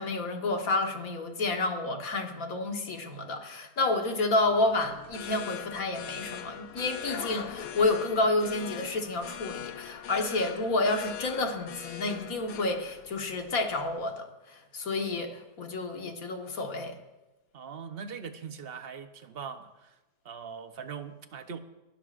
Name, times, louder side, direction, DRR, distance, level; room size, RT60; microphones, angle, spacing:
voice 1, 0.0-17.0, left 2 dB, 60° left, 4 dB, 1.8 m, -30 dB
sound 1, 4.4-14.0, left 10 dB, 80° left, 1.3 m, -42 dB
voice 2, 17.5-19.9 20.2-21.6, right 6 dB, 45° right, 9 dB, 0.8 m, -41 dB
29.5 x 12.5 x 2.5 m, 1.0 s
omnidirectional pair, 1.7 m